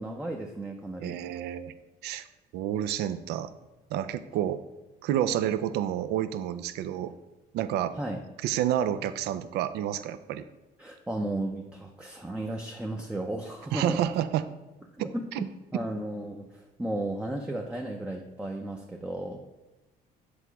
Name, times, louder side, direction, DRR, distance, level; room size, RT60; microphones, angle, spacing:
voice 1, 0.0-1.2 7.9-8.2 10.8-14.0 15.0-19.4, right 1 dB, 5° right, 2 dB, 0.5 m, -34 dB
voice 2, 1.0-1.7 2.0-2.3 2.5-3.5 3.9-4.6 5.0-7.1 7.5-7.9 8.4-10.5 13.7-14.5 15.0-15.4, right 11 dB, 75° right, 12 dB, 0.4 m, -29 dB
7.9 x 3.0 x 4.6 m, 1.1 s
cardioid pair, 110°, 17 cm